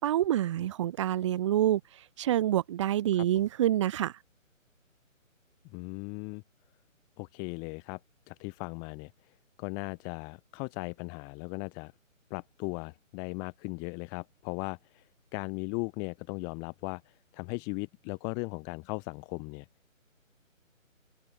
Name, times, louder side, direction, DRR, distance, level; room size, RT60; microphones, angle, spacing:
voice 1, 0.0-4.1, right 12 dB, 20° right, 5.4 m, -27 dB
voice 2, 5.7-6.4 7.2-8.0 8.3-9.1 9.6-11.9 12.3-15.1 15.3-19.7, left 36 dB, 10° left, 1.9 m, -37 dB
hypercardioid pair, 175°, 40 cm